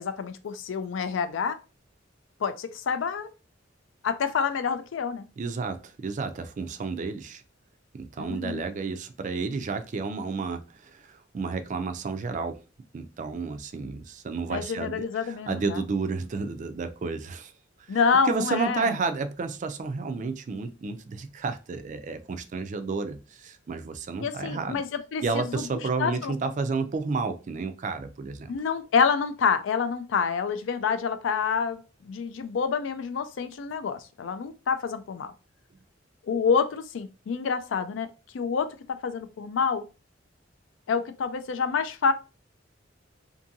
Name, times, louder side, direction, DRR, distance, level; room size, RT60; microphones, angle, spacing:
voice 1, 0.0-1.6 2.4-3.3 4.0-5.2 8.2-8.6 14.5-15.8 17.9-18.9 24.2-25.7 26.0-26.3 28.5-35.3 36.3-38.1 38.3-39.8 40.9-42.1, left 6 dB, 85° left, 0.4 m, -27 dB
voice 2, 5.4-7.4 7.9-12.6 12.9-17.5 17.9-18.0 18.3-24.8 25.2-28.5, right 4 dB, 40° right, 0.3 m, -31 dB
2.6 x 2.6 x 2.6 m
head